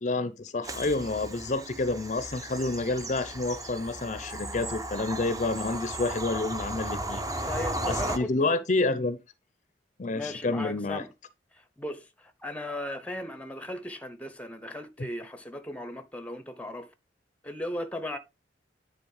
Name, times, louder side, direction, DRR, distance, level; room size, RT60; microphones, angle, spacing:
voice 1, 0.0-7.5 7.9-9.2 10.0-11.0, left 2 dB, 40° left, 0.6 m, -29 dB
Bird vocalization bird call bird song / Train, 0.6-8.2, right 1 dB, 20° right, 0.8 m, -35 dB
voice 2, 7.4-8.6 10.1-11.1 11.5-16.9 17.4-18.2, left 1 dB, 5° left, 0.8 m, -37 dB
9.7 x 4.1 x 4.8 m
head